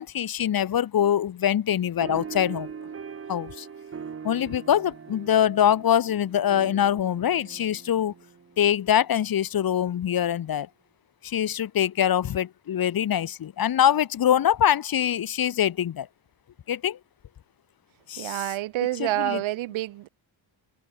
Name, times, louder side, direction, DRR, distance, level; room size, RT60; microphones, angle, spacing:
voice 1, 0.0-2.7 3.3-3.7 4.2-8.1 8.6-10.7 11.2-16.1 16.7-17.0 18.1-18.4 19.0-19.4, left 10 dB, 50° left, 1.1 m, -24 dB
sound 1, 2.0-8.9, right 6 dB, 30° right, 1.2 m, -41 dB
voice 2, 18.2-20.1, right 15 dB, 85° right, 0.8 m, -28 dB
wide cardioid pair, 150°, 46 cm